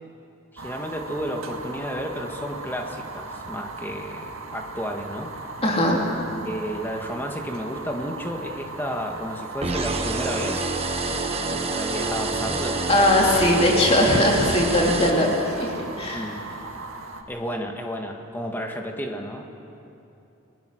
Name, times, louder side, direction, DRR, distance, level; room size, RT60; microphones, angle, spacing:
voice 1, 0.5-5.5 6.4-10.7 11.4-12.8 16.1-16.4 17.3-19.4, equal, 10° left, 2 dB, 1.8 m, -32 dB
Fire, 0.6-17.2, right 3 dB, 75° right, 1.9 m, -38 dB
voice 2, 5.6-6.0 12.9-16.3, left 1 dB, 30° left, -1 dB, 2.9 m, -20 dB
sound 1, 9.6-15.8, right 3 dB, 30° right, 1.3 m, -28 dB
29.5 x 19.5 x 6.5 m, 2.8 s
head